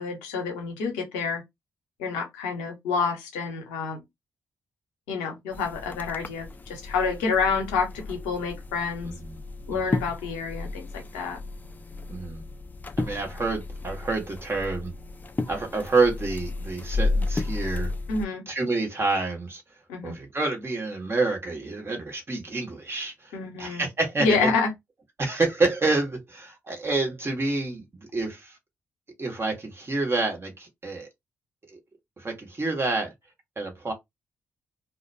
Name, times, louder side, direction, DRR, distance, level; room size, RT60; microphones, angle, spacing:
voice 1, 0.0-1.4 2.0-4.0 5.1-9.1 9.7-11.4 18.1-18.4 19.9-20.2 23.3-23.9 24.2-24.7, left 4 dB, 85° left, 0.7 m, -28 dB
sound 1, 5.5-18.2, left 3 dB, 25° left, 0.4 m, -33 dB
voice 2, 9.0-9.4 9.7-10.0 12.1-12.4 13.0-14.9 15.5-17.9 18.5-19.6 20.0-24.5 25.2-28.6 29.2-31.1 31.7-31.8 32.2-33.1 33.6-33.9, right 3 dB, 35° right, 1.1 m, -28 dB
2.2 x 2.2 x 2.6 m
hypercardioid pair, 40°, 7 cm